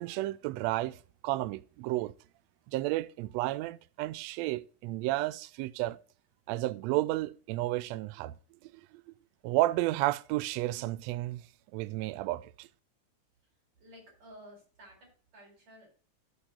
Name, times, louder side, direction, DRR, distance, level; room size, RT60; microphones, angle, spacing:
voice 1, 0.0-2.1 2.7-6.0 6.5-8.3 8.6-8.8 9.1-9.2 9.4-11.4 11.7-12.7, right 17 dB, 80° right, 1.6 m, -32 dB
voice 2, 13.8-15.9, equal, 65° right, 5.8 m, -53 dB
16.5 x 5.8 x 2.4 m
omnidirectional pair, 3.4 m